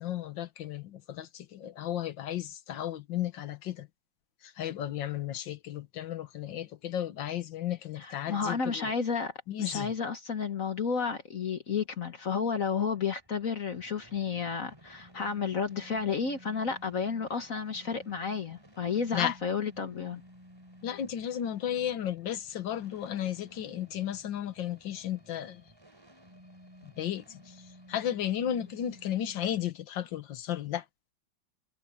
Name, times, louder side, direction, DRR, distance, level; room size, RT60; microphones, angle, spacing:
voice 1, 0.0-3.9 4.4-8.9 9.5-9.9 19.1-19.4 20.8-25.6 26.8-30.9, left 11 dB, 85° left, 1.8 m, -34 dB
voice 2, 8.0-9.3 9.6-20.2, left 6 dB, 50° left, 1.6 m, -32 dB
sound 1, 12.9-29.6, equal, 15° right, 3.7 m, -55 dB
omnidirectional pair, 2.0 m